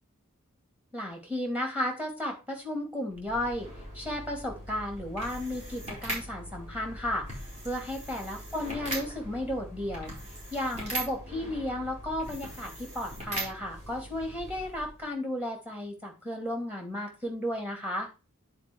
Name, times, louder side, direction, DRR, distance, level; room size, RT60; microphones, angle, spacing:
voice 1, 0.9-3.7 3.9-7.3 7.6-18.1, left 1 dB, 5° right, 2 dB, 2.6 m, -34 dB
sound 1, 3.1-15.1, right 1 dB, 30° right, 4.4 m, -40 dB
9.8 x 4.5 x 4.7 m, 0.30 s
head